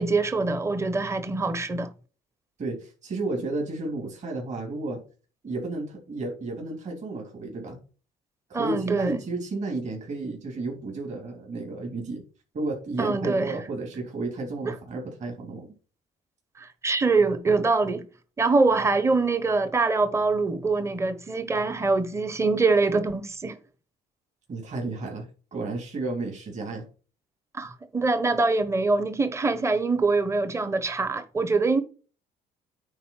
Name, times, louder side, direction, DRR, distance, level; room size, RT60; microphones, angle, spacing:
voice 1, 0.0-1.9 8.5-9.2 13.0-13.5 14.7-14.8 16.6-18.1 18.4-23.6 27.5-31.8, right 3 dB, 15° right, 1.1 m, -24 dB
voice 2, 2.6-5.0 5.4-7.8 8.5-12.2 12.5-15.7 24.5-26.9, right 2 dB, 45° right, 3.6 m, -32 dB
9.4 x 4.2 x 5.7 m
cardioid pair, 110°, 17 cm